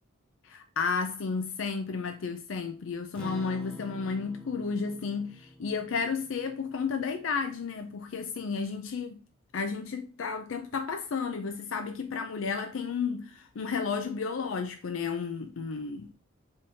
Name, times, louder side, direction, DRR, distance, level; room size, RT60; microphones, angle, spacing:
voice 1, 0.4-9.2 9.5-16.1, left 5 dB, 70° left, 0.5 m, -32 dB
Acoustic guitar, 3.2-7.8, left 1 dB, 5° left, 0.6 m, -47 dB
5.4 x 3.6 x 2.6 m
head